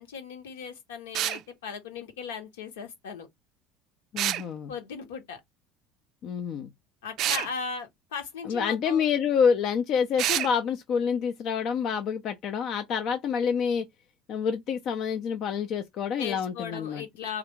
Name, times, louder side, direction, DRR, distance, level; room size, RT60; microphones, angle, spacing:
voice 1, 0.0-3.3 4.7-5.4 7.0-9.1 16.1-17.4, left 6 dB, 85° left, 1.2 m, -37 dB
sound 1, 1.1-1.4 4.2-4.4 7.2-7.5 10.2-10.5, right 12 dB, 55° right, 0.3 m, -27 dB
voice 2, 4.1-4.7 6.2-6.7 8.4-13.9 14.3-17.0, left 7 dB, 55° left, 0.6 m, -27 dB
3.2 x 2.5 x 3.1 m
hypercardioid pair, 75°, 0 cm